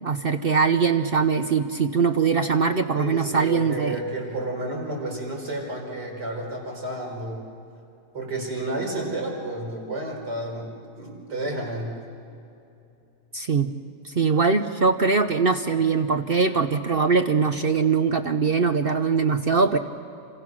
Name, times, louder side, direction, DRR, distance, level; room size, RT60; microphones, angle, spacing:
voice 1, 0.0-4.0 13.3-13.7 14.0-19.8, right 5 dB, 50° right, 8 dB, 0.7 m, -22 dB
voice 2, 3.0-7.5 8.1-11.9, right 1 dB, 80° right, -1 dB, 5.6 m, -31 dB
27.5 x 26.5 x 6.2 m, 2.6 s
omnidirectional pair, 1.8 m